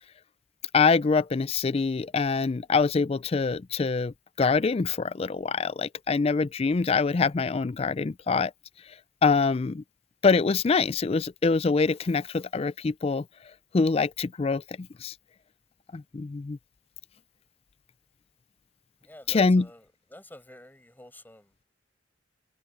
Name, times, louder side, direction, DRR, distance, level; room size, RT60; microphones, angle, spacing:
voice 1, 0.7-8.5 9.2-9.8 10.2-13.3 13.7-15.1 15.9-16.6 19.3-19.7, left 4 dB, 30° left, 0.4 m, -25 dB
voice 2, 19.0-21.7, left 1 dB, 10° left, 5.2 m, -50 dB
head